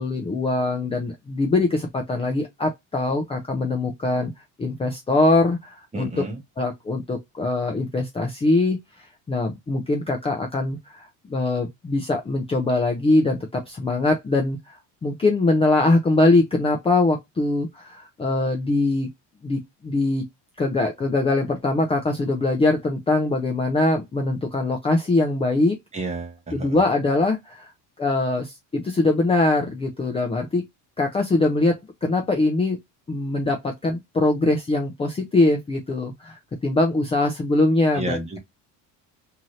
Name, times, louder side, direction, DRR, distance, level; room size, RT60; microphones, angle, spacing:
voice 1, 0.0-4.3 4.6-6.2 6.6-19.1 19.4-20.2 20.6-25.8 26.5-27.7 28.0-30.7 31.0-32.8 33.1-38.2, left 2 dB, 15° left, 0.5 m, -22 dB
voice 2, 5.9-6.4 25.9-26.8 37.9-38.4, right 2 dB, 15° right, 1.0 m, -31 dB
2.8 x 2.5 x 3.0 m
cardioid pair, 125°, 38 cm